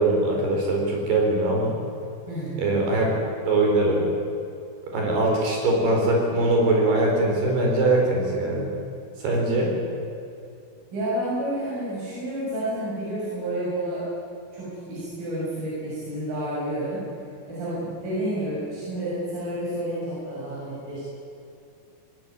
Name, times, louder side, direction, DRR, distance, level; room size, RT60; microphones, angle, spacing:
voice 1, 0.0-1.8 2.6-3.1 3.5-4.1 4.8-8.7 9.2-9.7, right 2 dB, 80° right, 0 dB, 6.5 m, -22 dB
voice 2, 2.3-2.6 10.9-14.1 14.5-17.0 17.5-21.0, right 1 dB, 60° right, -8 dB, 8.5 m, -30 dB
20.0 x 19.0 x 9.7 m, 2.6 s
omnidirectional pair, 4.6 m